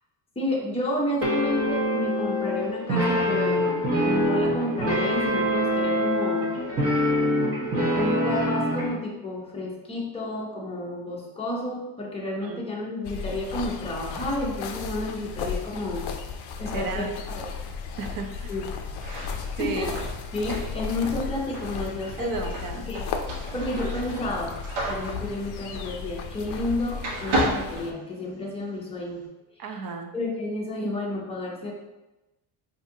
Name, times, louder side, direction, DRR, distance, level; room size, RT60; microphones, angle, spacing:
voice 1, 0.4-3.6 4.0-6.5 7.9-16.1 16.6-17.5 18.5-18.6 19.2-19.3 19.6-20.0 20.3-22.4 22.8-23.1 23.5-24.6 24.8-29.2 30.1-31.7, left 1 dB, 15° left, -3 dB, 0.6 m, -31 dB
sound 1, 1.2-8.9, equal, 30° right, 0.9 m, -24 dB
sound 2, 13.0-27.9, left 5 dB, 55° left, 0.5 m, -35 dB
voice 2, 16.7-17.1 18.0-18.6 19.6-20.0 22.2-22.9 29.6-30.1, right 4 dB, 45° right, 4 dB, 0.5 m, -33 dB
foot steps and door opening, 18.9-26.7 27.0-28.6, right 1 dB, 85° right, 1.2 m, -33 dB
4.7 x 2.7 x 2.7 m, 1.0 s
cardioid pair, 150°, 48 cm